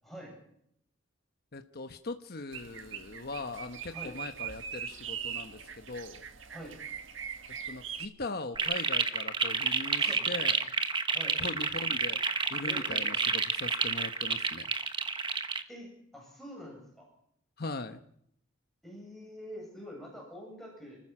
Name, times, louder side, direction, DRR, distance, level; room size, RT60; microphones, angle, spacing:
voice 1, 0.0-0.4 3.9-4.1 6.5-6.8 10.0-10.3 11.1-11.4 12.6-13.0 15.7-17.1 18.8-21.0, equal, ahead, -2 dB, 7.8 m, -45 dB
voice 2, 1.5-6.2 7.6-10.7 11.4-14.7 17.6-18.0, left 3 dB, 50° left, 7 dB, 1.1 m, -40 dB
sound 1, 2.5-8.1, right 8 dB, 65° right, 1.7 m, -41 dB
sound 2, 8.5-15.6, right 5 dB, 25° right, 1.2 m, -30 dB
30.0 x 15.0 x 6.1 m, 0.71 s
head